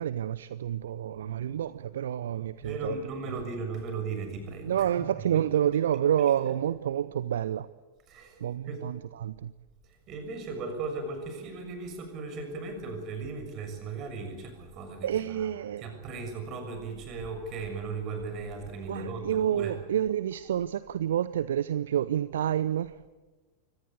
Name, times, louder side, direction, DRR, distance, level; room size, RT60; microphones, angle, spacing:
voice 1, 0.0-3.0 4.6-7.7 8.4-9.5 15.0-15.8 18.9-23.0, right 10 dB, 60° right, 0.6 m, -29 dB
voice 2, 2.6-4.9 5.2-5.5 6.2-6.3 8.1-8.4 8.7-8.8 10.1-15.5 15.8-19.9, right 4 dB, 35° right, 6.8 m, -37 dB
25.0 x 18.0 x 8.4 m
figure-of-eight pair, 90°, 0 cm